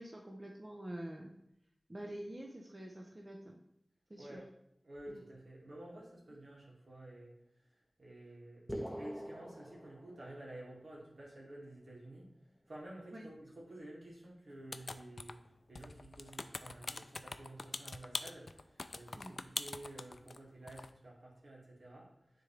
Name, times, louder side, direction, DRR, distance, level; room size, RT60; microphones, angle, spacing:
voice 1, 0.0-1.3 1.9-3.6 4.1-4.4 5.1-5.2 13.1-13.3 19.2-19.4, right 1 dB, 30° right, 1 dB, 0.7 m, -47 dB
voice 2, 4.8-8.7 8.9-12.3 12.7-15.4 15.7-22.4, right 1 dB, 70° right, -4 dB, 2.3 m, -51 dB
sound 1, 8.7-10.6, equal, ahead, 1.0 m, -44 dB
sound 2, 14.7-15.5 15.7-20.4 20.7-20.9, left 3 dB, 65° left, 0.3 m, -43 dB
9.5 x 3.8 x 3.3 m, 0.79 s
wide cardioid pair, 55°, 0 cm